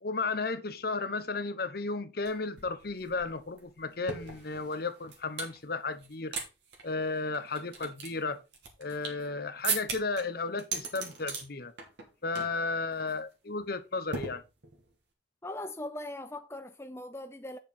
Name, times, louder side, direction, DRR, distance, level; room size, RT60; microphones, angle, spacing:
voice 1, 0.0-6.3 6.8-8.4 8.8-11.7 12.2-14.4, left 3 dB, 55° left, 1.0 m, -34 dB
sound 1, 2.2-2.3 2.6-5.6 6.0-6.5 6.7-6.8 7.3-9.3 9.6-10.2 10.6-11.4 11.8-12.1 12.3-12.6 12.9-13.1 14.1-14.9, right 5 dB, 65° right, 2.7 m, -37 dB
voice 2, 15.4-17.6, left 1 dB, 15° left, 0.6 m, -40 dB
8.5 x 6.5 x 4.3 m
head